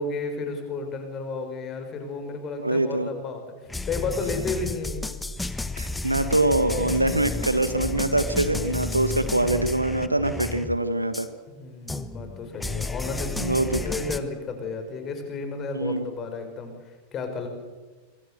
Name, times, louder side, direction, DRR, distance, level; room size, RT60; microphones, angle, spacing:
voice 1, 0.0-5.0 11.6-17.5, left 3 dB, 30° left, 6 dB, 5.8 m, -32 dB
voice 2, 2.6-3.1 5.8-11.3 13.4-13.8 15.7-16.1, right 1 dB, 85° right, 12 dB, 1.7 m, -24 dB
sound 1, 3.7-10.8 11.1-11.3 11.9-14.2, left 3 dB, 5° left, 1.3 m, -32 dB
26.0 x 24.0 x 6.8 m, 1.3 s
figure-of-eight pair, 90°, 0 cm